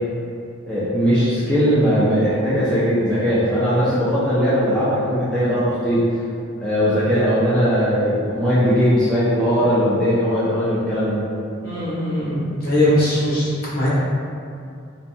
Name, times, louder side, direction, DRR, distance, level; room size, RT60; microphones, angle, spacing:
voice 1, 0.7-6.0 6.6-11.3, equal, 5° left, -12 dB, 0.3 m, -19 dB
voice 2, 11.6-13.9, left 1 dB, 45° left, -9 dB, 0.7 m, -20 dB
2.6 x 2.2 x 2.6 m, 2.5 s
head